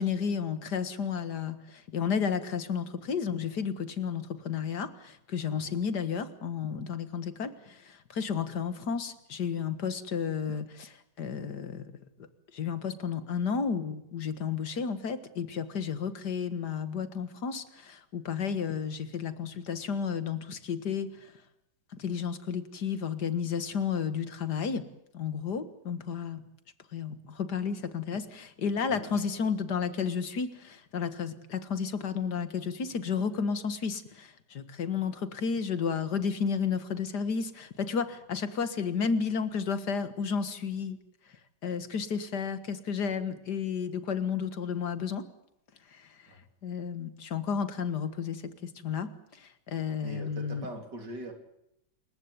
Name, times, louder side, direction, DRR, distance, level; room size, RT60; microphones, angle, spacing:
voice 1, 0.0-11.8 12.5-21.3 22.0-24.9 25.1-26.4 26.9-41.0 41.6-45.2 45.9-46.1 46.6-49.1 49.4-50.7, left 6 dB, 70° left, 11 dB, 2.2 m, -32 dB
voice 2, 28.8-29.5 46.3-46.5 50.0-51.3, right 2 dB, 80° right, 5 dB, 4.2 m, -43 dB
28.0 x 15.0 x 9.7 m, 0.82 s
omnidirectional pair, 1.8 m